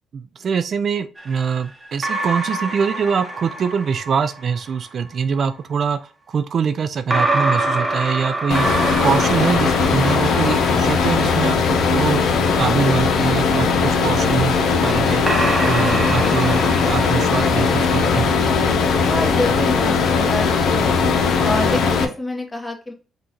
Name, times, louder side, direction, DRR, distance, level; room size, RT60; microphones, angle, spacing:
voice 1, 0.1-8.7 9.0-12.2 12.6-15.2 15.6-18.3, right 6 dB, 55° right, 10 dB, 0.4 m, -23 dB
sound 1, 1.2-4.6 7.1-12.5 13.7-18.3, right 2 dB, 15° right, 1.0 m, -26 dB
sound 2, 8.5-22.0, left 5 dB, 70° left, 0.8 m, -18 dB
voice 2, 19.0-20.4 20.7-20.9 21.4-22.9, left 1 dB, 20° left, 2 dB, 1.2 m, -27 dB
3.9 x 2.5 x 4.3 m, 0.34 s
cardioid pair, 90°, 0 cm